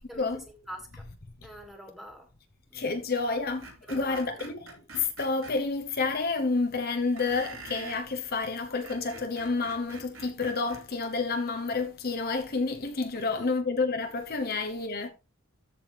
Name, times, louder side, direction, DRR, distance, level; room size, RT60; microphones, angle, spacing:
voice 1, 0.1-1.0 1.4-2.3 2.7-2.9 3.9-4.2 13.1-13.5 14.4-14.5, equal, ahead, 2.1 m, -45 dB
voice 2, 2.7-15.1, left 3 dB, 45° left, 1.0 m, -29 dB
Screech, 3.6-5.5 7.2-8.0 8.7-10.8, right 3 dB, 75° right, 4.5 m, -45 dB
14.0 x 4.9 x 3.4 m
head